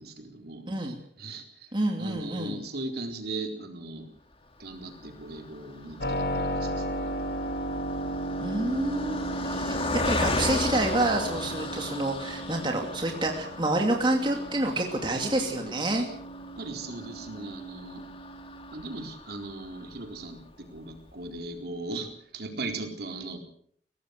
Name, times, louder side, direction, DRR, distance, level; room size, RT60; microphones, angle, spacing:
voice 1, 0.0-1.7 1.9-4.1 4.6-7.1 16.6-18.0 18.7-23.4, right 2 dB, 60° right, 4 dB, 4.1 m, -38 dB
voice 2, 0.7-1.0 1.7-2.6 8.4-16.1, right 1 dB, 25° right, 2 dB, 2.6 m, -28 dB
Car passing by, 4.8-20.2 20.8-20.9 21.1-21.3, left 2 dB, 35° left, 2.8 m, -36 dB
Keyboard (musical), 6.0-18.7, right 1 dB, 65° left, 3.0 m, -35 dB
23.5 x 18.5 x 6.6 m, 0.63 s
head